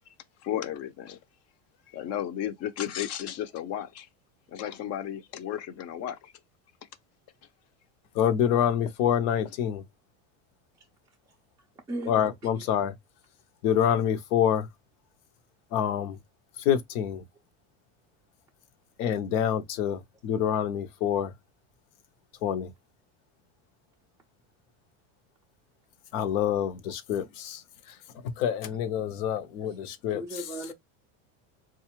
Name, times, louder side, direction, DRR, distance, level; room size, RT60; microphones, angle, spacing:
voice 1, 0.4-1.2 1.9-4.1 4.5-6.3, left 11 dB, 40° left, 0.5 m, -34 dB
voice 2, 8.1-9.8 12.1-12.9 13.6-14.7 15.7-16.2 16.6-17.2 19.0-21.3 22.4-22.7 26.1-27.6 27.9-28.0 28.2-30.2, left 9 dB, 75° left, 0.8 m, -26 dB
voice 3, 30.1-30.7, right 1 dB, 10° right, 0.3 m, -36 dB
4.0 x 2.3 x 2.9 m
supercardioid pair, 130°, 39 cm